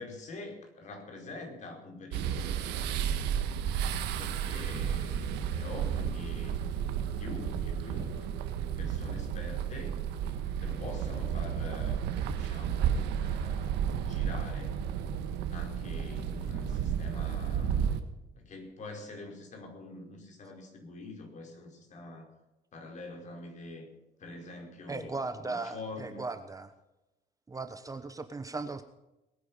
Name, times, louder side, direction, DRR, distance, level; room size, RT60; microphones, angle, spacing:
voice 1, 0.0-3.4 3.7-6.6 7.1-8.3 8.8-10.0 10.6-14.8 15.5-17.9 18.3-22.3 22.7-23.9 24.2-26.2, left 2 dB, 45° left, 3 dB, 4.8 m, -45 dB
sound 1, 2.1-18.0, right 8 dB, 90° right, 1.6 m, -32 dB
voice 2, 24.9-26.7 27.5-28.8, right 3 dB, 20° right, 9 dB, 1.1 m, -37 dB
21.0 x 9.6 x 5.4 m, 0.96 s
cardioid pair, 110°, 17 cm